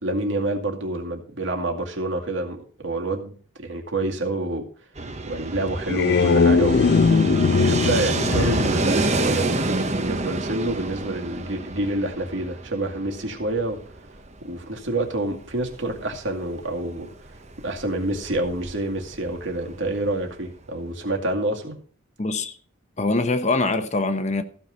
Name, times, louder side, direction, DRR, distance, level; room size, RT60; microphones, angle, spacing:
voice 1, 0.0-3.3 3.6-4.6 5.3-6.9 7.5-13.8 14.4-17.1 17.6-21.7, right 2 dB, 65° right, 2.3 m, -27 dB
Fixed-wing aircraft airplane, 5.0-20.7, right 2 dB, 35° right, 1.0 m, -29 dB
sound 1, 5.7-9.9, left 4 dB, 50° left, 0.4 m, -20 dB
voice 2, 22.2-22.6 23.0-24.4, left 3 dB, 35° left, 0.9 m, -23 dB
15.0 x 5.9 x 6.4 m
head